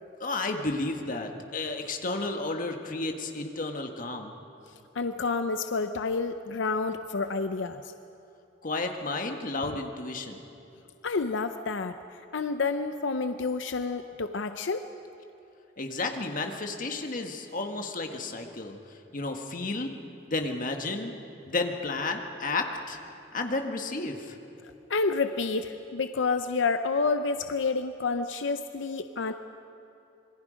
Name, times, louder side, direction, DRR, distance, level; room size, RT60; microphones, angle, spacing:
voice 1, 0.2-4.3 8.6-10.4 15.8-19.9 20.3-21.2 21.4-23.0 23.3-24.4, left 3 dB, 45° left, 4 dB, 1.7 m, -32 dB
voice 2, 4.9-7.8 11.0-12.0 12.3-14.9 24.9-29.3, left 4 dB, 85° left, 9 dB, 0.7 m, -29 dB
27.0 x 22.0 x 5.2 m, 2.8 s
head